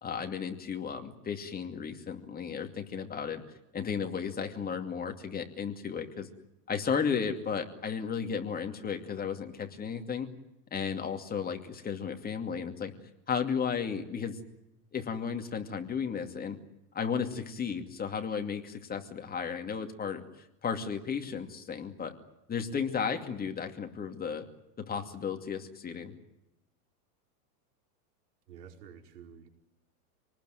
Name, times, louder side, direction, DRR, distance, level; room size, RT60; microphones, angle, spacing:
voice 1, 0.0-3.4 3.7-6.3 6.7-10.3 10.7-12.9 13.3-14.4 14.9-16.6 16.9-22.1 22.5-24.5 24.8-26.1, left 6 dB, 20° left, 5 dB, 2.5 m, -34 dB
voice 2, 28.5-29.5, right 7 dB, 90° right, 5 dB, 4.9 m, -50 dB
27.0 x 19.5 x 9.3 m, 0.90 s
supercardioid pair, 135°, 46 cm